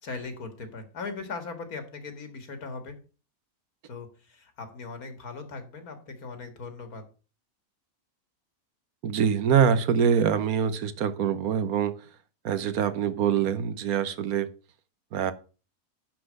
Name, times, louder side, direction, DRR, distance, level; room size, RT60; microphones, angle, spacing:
voice 1, 0.0-3.0 3.9-7.1, left 4 dB, 75° left, 2.1 m, -39 dB
voice 2, 9.0-12.0 12.4-14.5 15.1-15.3, right 7 dB, 80° right, 1.3 m, -24 dB
10.5 x 4.2 x 6.3 m
omnidirectional pair, 1.6 m